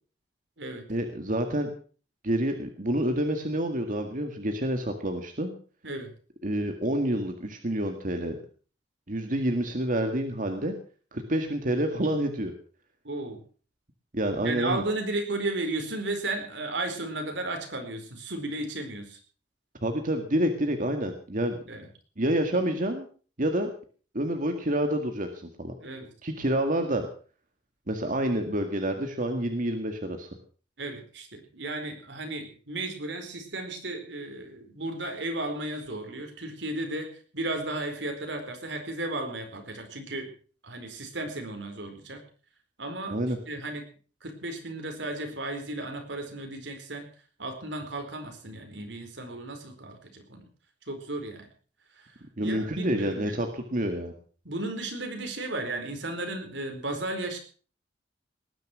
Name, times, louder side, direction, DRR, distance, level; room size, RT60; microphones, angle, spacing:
voice 1, 0.9-1.7 2.2-5.5 6.4-8.4 9.1-10.7 11.1-12.5 14.1-14.8 19.8-21.6 22.2-23.1 23.4-23.7 24.1-25.7 26.2-27.1 27.9-30.3 43.1-43.4 52.4-54.1, right 1 dB, 50° right, 5 dB, 1.9 m, -28 dB
voice 2, 13.0-13.4 14.4-19.2 21.7-21.9 25.8-26.1 30.8-40.3 40.6-42.2 42.8-43.8 44.2-47.1 47.4-50.4 50.9-51.5 52.0-52.1 52.4-53.5 54.4-57.4, right 2 dB, 80° right, 5 dB, 4.6 m, -34 dB
19.5 x 10.5 x 6.2 m, 0.42 s
head